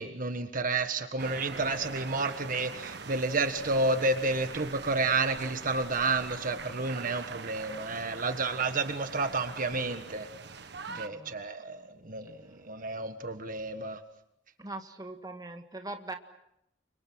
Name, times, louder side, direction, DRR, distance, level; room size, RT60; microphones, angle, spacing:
voice 1, 0.0-10.3 10.9-12.4 12.6-14.0, right 3 dB, 50° right, 8 dB, 1.6 m, -30 dB
sound 1, 1.2-11.1, right 5 dB, 65° right, 1.4 m, -42 dB
voice 2, 10.9-11.3 14.6-16.2, right 2 dB, 20° right, 5 dB, 1.8 m, -41 dB
30.0 x 25.0 x 6.3 m, 0.83 s
head